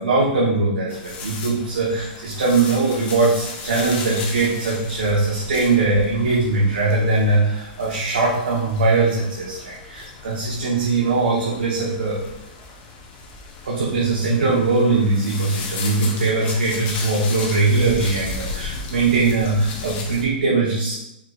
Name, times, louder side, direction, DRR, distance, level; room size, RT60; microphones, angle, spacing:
voice 1, 0.0-12.2 13.6-21.0, right 3 dB, 85° right, -4 dB, 1.0 m, -21 dB
sound 1, 0.9-20.2, left 4 dB, 30° left, 0.8 m, -35 dB
4.6 x 4.5 x 2.3 m, 0.86 s
hypercardioid pair, 150°, 5 cm